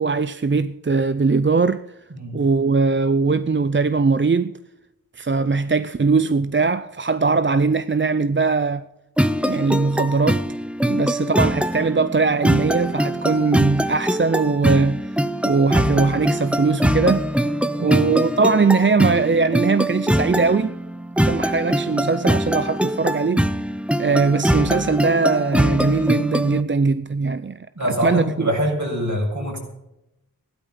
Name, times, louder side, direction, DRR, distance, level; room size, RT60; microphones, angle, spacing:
voice 1, 0.0-1.8 2.3-4.5 5.2-8.8 9.4-10.4 10.9-17.3 17.8-20.7 21.2-23.5 24.0-28.5, right 4 dB, 30° right, 0.5 m, -20 dB
sound 1, 9.2-26.6, equal, 5° right, 0.8 m, -22 dB
voice 2, 27.7-29.6, equal, 50° right, 7.1 m, -24 dB
16.0 x 12.5 x 5.7 m
wide cardioid pair, 55°, 37 cm